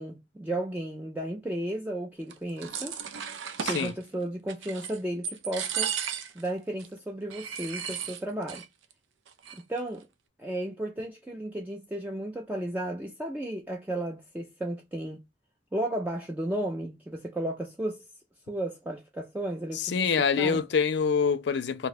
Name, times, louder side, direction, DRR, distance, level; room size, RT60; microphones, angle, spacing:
voice 1, 0.0-3.0 3.7-6.0 6.3-8.6 9.7-10.1 10.4-15.2 15.7-18.1 18.5-20.6, right 1 dB, 10° right, 0.3 m, -34 dB
sound 1, 2.3-3.9 4.5-5.0 5.2-6.5 6.8-6.9 7.3-8.7 8.9-9.0 9.3-9.8, right 7 dB, 75° right, 0.5 m, -34 dB
voice 2, 3.6-3.9 19.8-21.9, left 6 dB, 60° left, 0.4 m, -26 dB
2.7 x 2.2 x 4.0 m
head